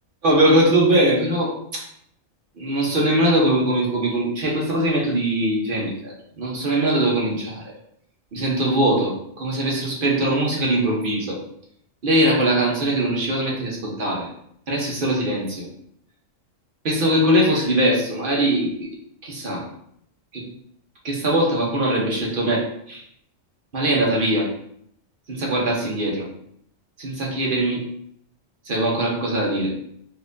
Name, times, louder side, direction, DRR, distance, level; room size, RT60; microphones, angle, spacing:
voice 1, 0.2-1.8 2.6-7.6 8.3-11.4 12.0-14.3 14.7-15.7 16.8-18.9 19.2-19.6 20.3-20.4 21.0-23.0 23.7-24.5 25.3-26.3 27.0-27.8 28.7-29.7, right 1 dB, 45° right, -2 dB, 0.9 m, -21 dB
4.1 x 2.6 x 2.6 m, 0.70 s
omnidirectional pair, 1.3 m